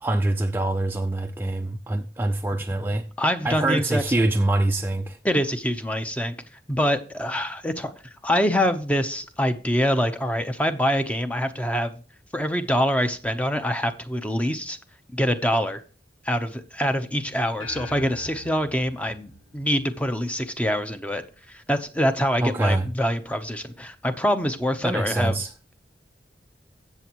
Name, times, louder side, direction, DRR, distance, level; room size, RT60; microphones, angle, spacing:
voice 1, 0.0-3.0 3.4-5.2 22.4-22.9 24.8-25.5, right 2 dB, 10° right, 0.4 m, -24 dB
voice 2, 3.2-4.0 5.2-6.3 6.7-12.0 12.3-14.8 15.1-15.8 16.2-21.2 21.5-25.4, equal, 10° left, 0.8 m, -25 dB
sound 1, 17.6-20.3, left 2 dB, 90° left, 1.5 m, -43 dB
15.5 x 7.0 x 3.0 m
head